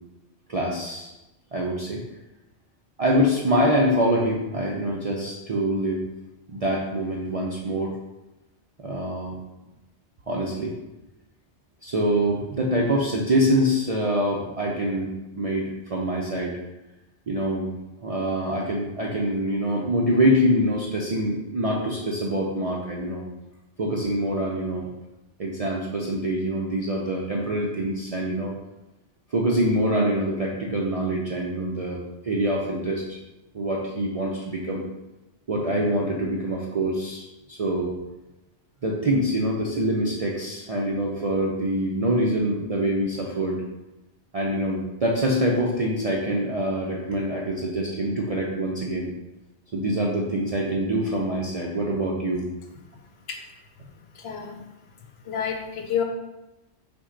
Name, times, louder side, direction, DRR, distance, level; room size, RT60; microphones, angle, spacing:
voice 1, 0.5-1.1 1.5-2.0 3.0-6.0 6.5-7.9 8.8-9.4 10.3-10.7 11.8-16.6 17.3-17.7 18.0-23.2 23.8-24.9 25.4-28.5 29.3-33.2 33.5-34.8 35.5-37.9 38.8-43.6 44.3-49.1 49.7-52.5, right 1 dB, 50° right, -3 dB, 0.4 m, -25 dB
voice 2, 54.1-54.6 55.2-56.0, left 7 dB, 65° left, 3 dB, 0.8 m, -29 dB
5.9 x 2.2 x 3.8 m, 1.0 s
omnidirectional pair, 1.2 m